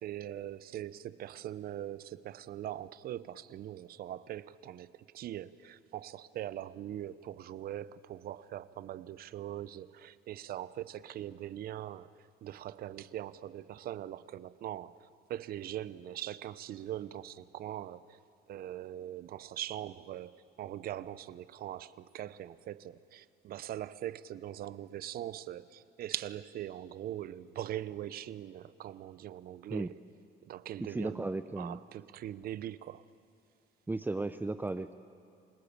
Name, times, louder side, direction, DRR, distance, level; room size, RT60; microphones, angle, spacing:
voice 1, 0.0-12.1 12.4-18.2 18.5-29.9 30.5-31.2 31.5-33.0, right 12 dB, 60° right, 0.8 m, -41 dB
voice 2, 30.8-31.8 33.9-34.9, right 2 dB, 10° right, 0.6 m, -35 dB
28.5 x 19.0 x 8.7 m
cardioid pair, 110°, 17 cm